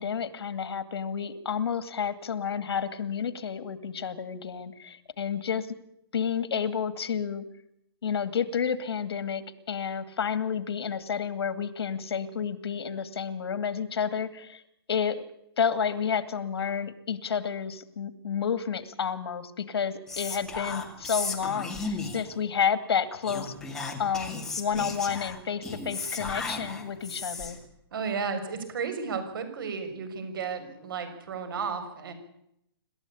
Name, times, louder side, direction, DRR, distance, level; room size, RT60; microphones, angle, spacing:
voice 1, 0.0-5.7 6.1-7.4 8.0-14.6 14.9-15.2 15.6-23.5 24.0-27.6, left 7 dB, 80° left, 13 dB, 2.4 m, -30 dB
Whispering, 20.1-22.4 23.2-27.7, left 3 dB, 5° left, 2.4 m, -35 dB
voice 2, 27.9-32.1, right 5 dB, 60° right, 9 dB, 6.5 m, -33 dB
27.0 x 13.5 x 8.6 m, 0.76 s
hypercardioid pair, 170°, 13 cm